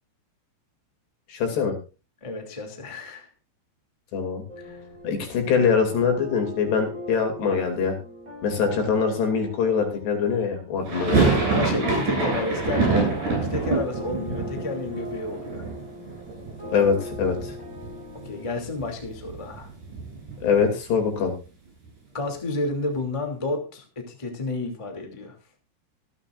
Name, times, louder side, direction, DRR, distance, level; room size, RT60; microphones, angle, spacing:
voice 1, 1.3-1.8 4.1-4.4 5.0-7.9 8.4-11.4 16.7-17.5 20.4-21.3, left 6 dB, 60° left, 4 dB, 4.7 m, -23 dB
voice 2, 2.2-3.3 4.6-4.9 11.5-15.6 18.1-19.7 22.1-25.4, left 2 dB, 20° left, 3 dB, 0.8 m, -31 dB
sound 1, 4.5-18.5, left 1 dB, 15° right, 7.1 m, -40 dB
sound 2, 10.9-16.8 17.1-17.9 18.2-18.3 18.5-20.7, right 3 dB, 40° right, 9.1 m, -26 dB
26.0 x 9.0 x 2.6 m, 0.31 s
omnidirectional pair, 5.9 m